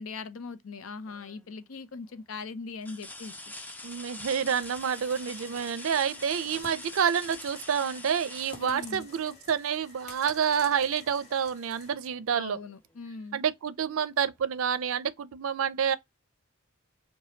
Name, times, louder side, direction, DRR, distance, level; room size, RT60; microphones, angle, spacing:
voice 1, 0.0-3.3 8.6-9.1 12.3-13.4, left 4 dB, 80° left, 0.6 m, -40 dB
sound 1, 1.1-1.5 2.1-2.2 2.8-9.5 11.3-11.4 11.9-12.9 14.2-14.3, left 2 dB, 10° left, 0.4 m, -44 dB
voice 2, 3.8-12.6 13.3-16.0, right 7 dB, 75° right, 0.4 m, -28 dB
sound 2, 4.4-11.9, left 3 dB, 35° left, 1.2 m, -51 dB
4.9 x 2.2 x 2.7 m
head